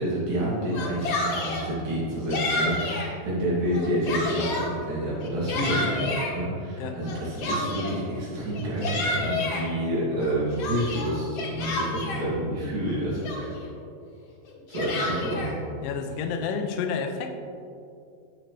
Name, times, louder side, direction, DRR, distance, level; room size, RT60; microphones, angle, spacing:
voice 1, 0.0-13.5 14.7-15.5, equal, 80° right, -7 dB, 4.3 m, -28 dB
Yell, 0.6-1.7 2.3-3.1 3.6-4.7 5.2-6.3 7.1-8.0 8.5-9.6 10.2-12.3 12.9-13.0 13.2-13.7 14.5-15.5, left 2 dB, 55° left, 2.2 m, -30 dB
voice 2, 15.8-17.3, left 6 dB, 85° left, 6 dB, 2.4 m, -30 dB
11.0 x 8.9 x 3.3 m, 2.5 s
omnidirectional pair, 3.8 m